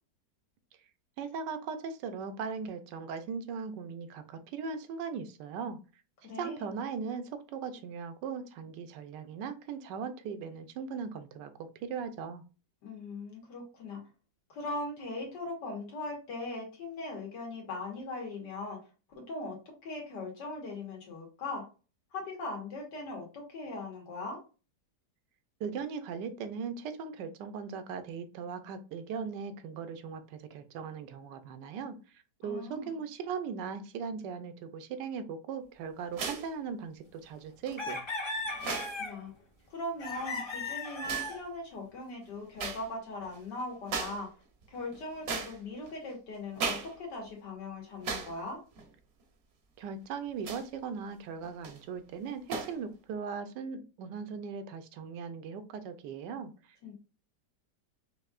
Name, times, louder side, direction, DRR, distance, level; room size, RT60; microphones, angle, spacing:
voice 1, 1.2-5.8 6.4-12.4 25.6-32.0 32.4-38.0 49.8-56.5, right 6 dB, 85° right, 10 dB, 1.3 m, -39 dB
voice 2, 6.2-6.7 12.8-14.0 14.5-18.8 19.1-19.6 19.8-21.6 22.1-24.4 32.4-33.0 38.9-39.3 39.7-44.3 44.7-48.6 56.8-56.9, left 2 dB, 85° left, 0 dB, 2.1 m, -39 dB
sound 1, 36.1-36.5 37.7-37.8 38.5-39.0 40.1-40.4 41.0-41.4 42.6-42.9 43.2-43.4 43.9-44.3 44.6-45.9 46.5-47.0 47.3-47.4 48.0-48.4 48.8-48.9 50.4-50.8 51.4-51.8 52.5-52.8, right 5 dB, 55° right, 0.7 m, -37 dB
sound 2, 37.8-39.2 40.0-41.4, left 1 dB, 30° left, 0.5 m, -36 dB
5.4 x 2.7 x 2.4 m, 0.33 s
omnidirectional pair, 1.8 m